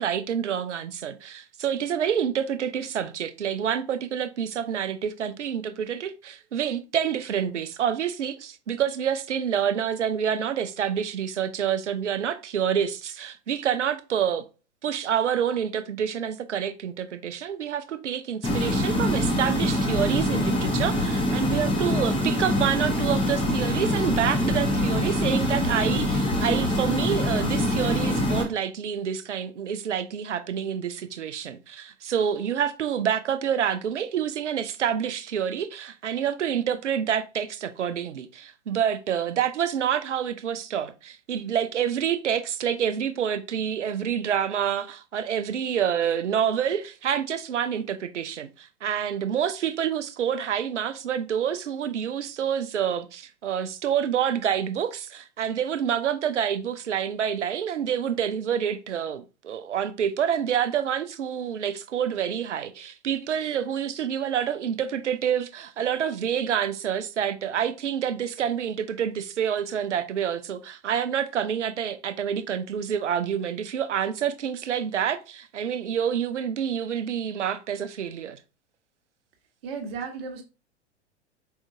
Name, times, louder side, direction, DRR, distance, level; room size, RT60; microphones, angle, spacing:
voice 1, 0.0-14.4 14.8-78.4, right 8 dB, 80° right, 0.6 m, -27 dB
sound 1, 18.4-28.4, left 1 dB, 15° left, 0.9 m, -24 dB
voice 2, 79.6-80.4, right 5 dB, 55° right, 1.3 m, -34 dB
4.5 x 3.5 x 2.7 m
figure-of-eight pair, 105°, 35 cm